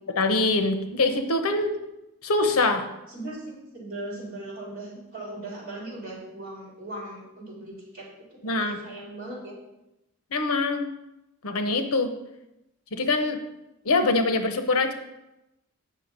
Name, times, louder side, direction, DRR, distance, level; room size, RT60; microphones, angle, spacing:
voice 1, 0.1-1.7 2.2-2.9 8.4-8.8 10.3-10.9 11.4-12.1 12.9-13.4 13.8-14.9, left 3 dB, 75° left, 7 dB, 0.9 m, -24 dB
voice 2, 3.1-9.5, right 1 dB, 40° right, -4 dB, 3.5 m, -39 dB
8.6 x 6.1 x 5.2 m, 0.92 s
head